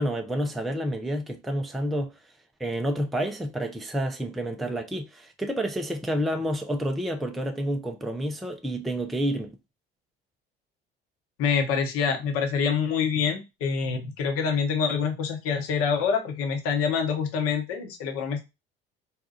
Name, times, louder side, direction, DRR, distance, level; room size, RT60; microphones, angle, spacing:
voice 1, 0.0-2.2 2.6-9.6, equal, ahead, 0.4 m, -29 dB
voice 2, 11.4-18.4, left 6 dB, 50° left, 1.0 m, -26 dB
4.1 x 2.3 x 2.6 m
figure-of-eight pair, 55°, 30 cm